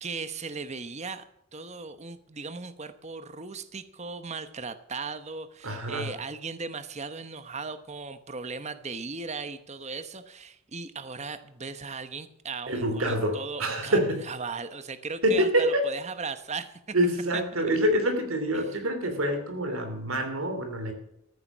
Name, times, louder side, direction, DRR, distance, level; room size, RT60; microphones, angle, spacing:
voice 1, 0.0-1.2 1.5-14.0 14.3-16.8 17.3-17.4 18.5-18.7, right 4 dB, 30° right, 11 dB, 1.0 m, -37 dB
voice 2, 5.6-6.1 12.7-14.3 15.2-15.9 16.9-20.9, equal, 70° right, 5 dB, 3.0 m, -26 dB
14.5 x 9.7 x 6.2 m, 0.79 s
head